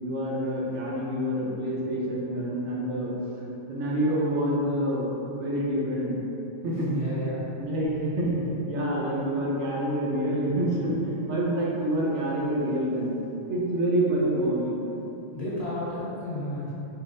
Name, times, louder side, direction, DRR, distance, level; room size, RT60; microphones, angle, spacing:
voice 1, 0.0-3.1 3.7-6.1 6.6-7.0 7.6-13.1 13.5-14.7, right 1 dB, 75° right, -5 dB, 1.0 m, -27 dB
voice 2, 6.7-7.5 15.3-16.7, left 1 dB, 35° left, -10 dB, 1.1 m, -32 dB
4.4 x 3.6 x 2.6 m, 3.0 s
omnidirectional pair, 1.2 m